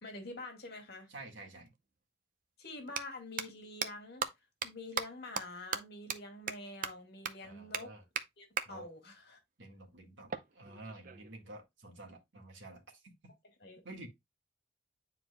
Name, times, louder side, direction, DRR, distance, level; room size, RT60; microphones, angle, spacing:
voice 1, 0.0-1.1 2.6-4.3 4.6-7.9 8.4-9.4 13.6-13.8, left 2 dB, 60° left, 2.1 m, -46 dB
voice 2, 1.1-1.7 7.4-8.0 8.7-8.9 9.6-13.1 13.8-14.1, right 2 dB, 75° right, 1.8 m, -50 dB
sound 1, 1.7-1.8 2.8-3.0 3.4-3.5 3.8-3.9 4.2-4.3 4.6-4.7 5.0-5.1 5.4-5.5 5.7-5.8 6.1-6.2 6.5-6.6 6.8-6.9 7.2-7.3 7.7-7.8 8.2-8.3 8.6-8.7 10.3-11.3, right 6 dB, 45° right, 0.6 m, -35 dB
9.6 x 4.5 x 2.3 m
head